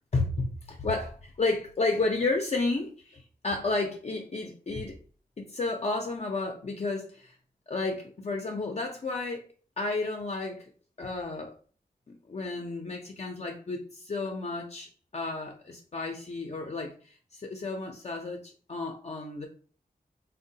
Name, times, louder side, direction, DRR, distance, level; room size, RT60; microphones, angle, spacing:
voice 1, 0.1-5.0 5.4-7.4 7.7-9.4 9.8-10.7 11.0-11.5 12.3-19.5, left 3 dB, 45° left, 2 dB, 0.4 m, -32 dB
3.6 x 2.1 x 2.7 m, 0.42 s
wide cardioid pair, 80°, 16 cm